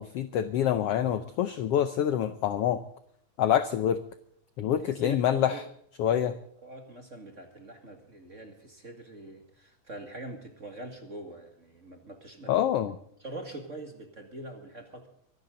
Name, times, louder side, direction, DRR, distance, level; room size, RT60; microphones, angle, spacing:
voice 1, 0.0-2.8 3.4-4.0 4.6-5.6 6.0-6.3 12.5-13.0, left 10 dB, 80° left, 12 dB, 1.3 m, -26 dB
voice 2, 4.6-5.2 5.5-5.6 6.1-6.2 6.6-12.5 13.2-15.1, right 2 dB, 30° right, 4 dB, 1.8 m, -44 dB
24.0 x 12.0 x 3.9 m, 0.70 s
omnidirectional pair, 3.6 m